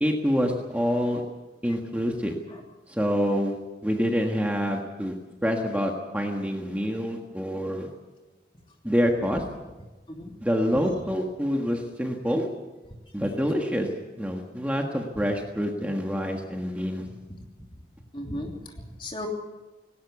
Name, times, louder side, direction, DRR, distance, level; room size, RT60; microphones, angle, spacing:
voice 1, 0.0-1.2 1.6-2.3 2.9-3.5 3.8-5.2 5.4-7.9 8.8-9.4 10.4-12.5 13.1-13.9 14.2-17.0, equal, 10° right, 1 dB, 1.5 m, -26 dB
voice 2, 18.1-19.3, equal, 30° left, 1 dB, 3.1 m, -36 dB
19.0 x 18.0 x 8.3 m, 1.2 s
head